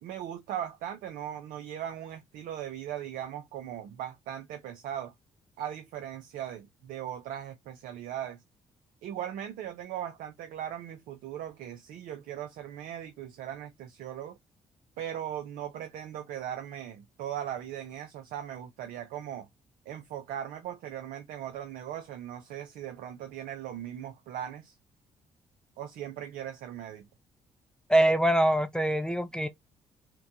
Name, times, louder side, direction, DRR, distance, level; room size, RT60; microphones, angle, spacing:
voice 1, 0.0-5.1 5.6-8.4 9.0-14.4 15.0-19.5 19.9-24.8 25.8-27.1, right 10 dB, 70° right, 0.5 m, -39 dB
voice 2, 27.9-29.5, right 1 dB, 5° left, 0.5 m, -24 dB
2.9 x 2.1 x 2.5 m
hypercardioid pair, 45°, 15 cm